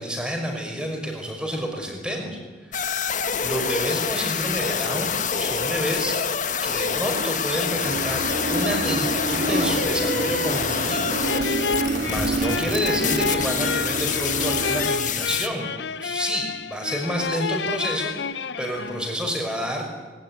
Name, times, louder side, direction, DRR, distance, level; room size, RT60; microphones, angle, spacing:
voice 1, 0.0-2.4 3.4-6.2 6.6-11.2 12.0-15.7 16.0-18.1 18.6-19.9, equal, 5° right, 2 dB, 5.6 m, -29 dB
sound 1, 2.7-15.5, left 6 dB, 45° left, 1.5 m, -27 dB
sound 2, 7.8-14.8, right 2 dB, 60° right, 2.9 m, -28 dB
sound 3, 11.2-19.3, left 5 dB, 80° left, 0.8 m, -30 dB
21.0 x 20.0 x 9.8 m, 1.4 s
head